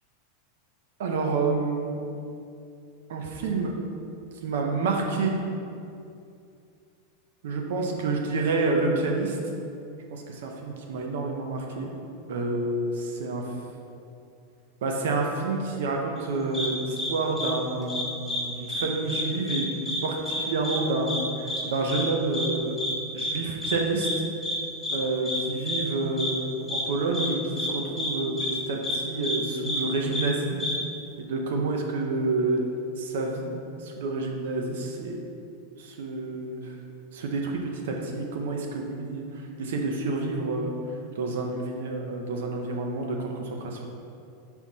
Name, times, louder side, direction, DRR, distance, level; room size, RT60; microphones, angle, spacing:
voice 1, 1.0-2.0 3.1-3.7 4.4-5.4 7.4-9.4 10.1-11.9 12.3-12.9 13.2-13.4 14.8-22.8 23.1-24.1 24.9-30.6 31.2-32.7 33.0-35.2 35.8-36.7 37.1-40.7 41.1-43.8, right 3 dB, 80° right, 1 dB, 0.9 m, -28 dB
sound 1, 16.5-16.7 17.0-17.1 17.4-17.5 17.9-18.4 18.7-18.8 19.1-19.6 19.9-20.0 20.3-20.4 20.6-20.8 21.1-21.2 21.5-21.6 21.9-22.0 22.3-22.5 22.8-22.9 23.2-23.3 23.6-23.7 24.0-24.1 24.4-24.6 24.8-25.0 25.3-25.4 25.7-25.8 26.2-26.3 26.7-26.8 27.1-27.3 27.6-27.7 28.0-28.1 28.4-28.5 28.8-29.0 29.2-29.4 29.6-29.8 30.1-30.2 30.6-30.7, left 2 dB, 10° left, 1.4 m, -29 dB
5.7 x 4.5 x 4.1 m, 2.5 s
supercardioid pair, 140°, 0 cm